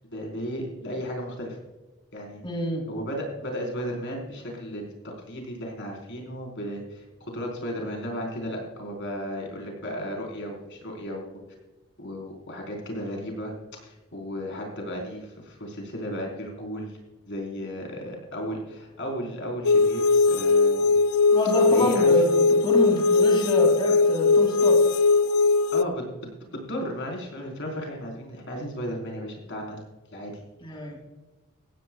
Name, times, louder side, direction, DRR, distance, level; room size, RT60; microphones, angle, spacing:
voice 1, 0.1-1.6 2.1-2.4 2.9-11.4 12.0-17.0 17.3-20.9 21.7-22.2 25.7-26.1 26.5-29.8 30.1-30.4, equal, 55° left, 0 dB, 4.3 m, -34 dB
voice 2, 2.4-2.9 21.3-24.8 30.6-31.0, equal, 20° left, 1 dB, 2.9 m, -27 dB
sound 1, 19.6-25.8, left 3 dB, 70° left, 0.4 m, -20 dB
18.0 x 15.5 x 2.4 m, 1.1 s
head